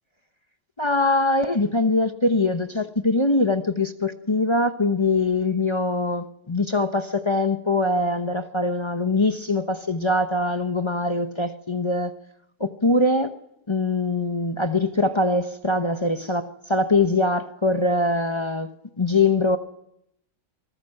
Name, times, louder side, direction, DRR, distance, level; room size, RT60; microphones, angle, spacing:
voice 1, 0.8-12.1 12.6-13.3 13.7-19.6, left 2 dB, 45° left, 0.3 m, -23 dB
25.5 x 20.0 x 7.8 m
omnidirectional pair, 2.3 m